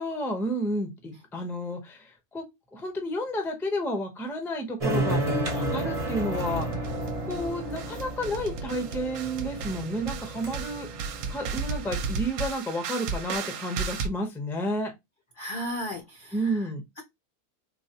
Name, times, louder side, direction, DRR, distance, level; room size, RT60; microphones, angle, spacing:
voice 1, 0.0-2.4 2.7-6.9 7.2-14.9 16.3-16.8, equal, 5° left, 0.4 m, -31 dB
sound 1, 4.8-12.3, right 1 dB, 35° right, 0.6 m, -32 dB
sound 2, 5.7-6.0 6.4-7.5 7.8-14.1, right 5 dB, 65° right, 0.8 m, -34 dB
voice 2, 15.4-16.7 17.0-17.1, equal, 65° left, 0.5 m, -35 dB
3.9 x 2.3 x 2.8 m
omnidirectional pair, 1.7 m